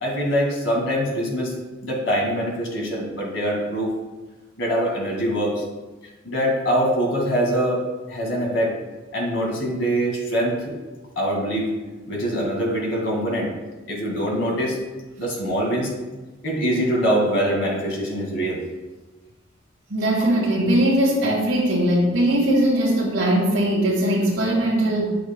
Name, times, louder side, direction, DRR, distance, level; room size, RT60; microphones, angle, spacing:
voice 1, 0.0-1.5 1.8-3.9 4.6-5.6 6.2-8.8 9.1-10.7 11.2-11.7 12.1-13.5 13.9-14.8 15.2-15.9 16.4-18.6, equal, 70° left, -1 dB, 2.0 m, -23 dB
voice 2, 19.9-25.1, right 1 dB, 85° right, -6 dB, 1.8 m, -20 dB
8.6 x 6.5 x 2.2 m, 1.2 s
head